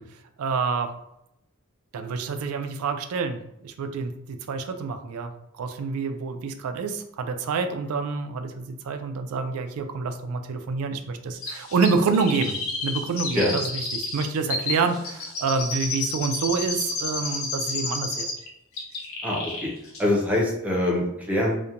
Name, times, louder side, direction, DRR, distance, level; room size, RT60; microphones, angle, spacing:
voice 1, 0.4-0.9 1.9-5.3 5.6-18.3, right 4 dB, 70° right, 7 dB, 0.3 m, -27 dB
Chirp tweet, 11.4-18.5 18.8-19.7 19.9-20.0, left 3 dB, 65° left, 0.6 m, -31 dB
voice 2, 19.2-19.7 20.0-21.5, left 1 dB, 5° right, -3 dB, 0.6 m, -24 dB
2.8 x 2.1 x 2.4 m, 0.80 s
head